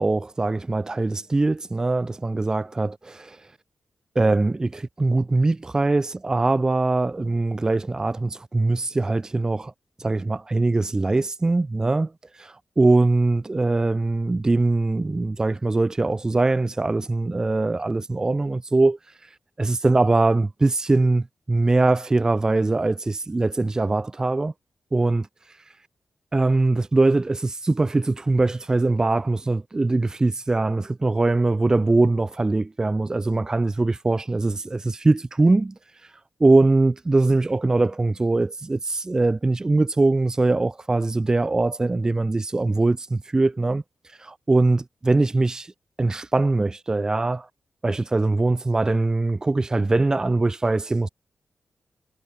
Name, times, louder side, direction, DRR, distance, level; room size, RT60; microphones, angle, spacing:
voice 1, 0.0-3.4 4.2-9.7 10.0-12.1 12.4-19.0 19.6-24.5 24.9-25.3 26.3-35.7 36.4-43.8 44.2-45.7 46.0-47.5 47.8-51.1, right 2 dB, 25° right, 0.5 m, -22 dB
cardioid pair, 55°, 3 cm